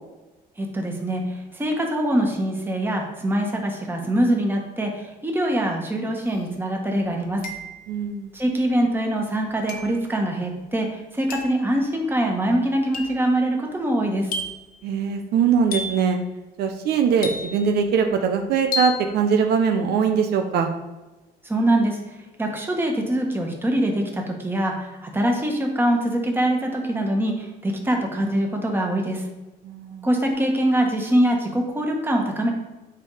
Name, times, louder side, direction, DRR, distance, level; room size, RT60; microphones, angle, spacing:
voice 1, 0.6-1.2 1.5-7.4 8.3-14.3 21.4-22.0 22.4-29.2 30.0-32.5, right 1 dB, 10° right, 1 dB, 1.5 m, -23 dB
sound 1, 6.3-6.4 7.4-8.0 9.7-10.0 11.3-11.6 12.9-13.3 14.3-14.7 15.7-16.1 17.2-17.8 18.7-19.1, left 3 dB, 60° left, 1.1 m, -31 dB
voice 2, 7.9-8.3 14.8-16.2 16.6-20.7 29.6-30.1, right 6 dB, 70° right, 5 dB, 0.8 m, -21 dB
8.3 x 3.6 x 4.9 m, 1.1 s
cardioid pair, 110°, 17 cm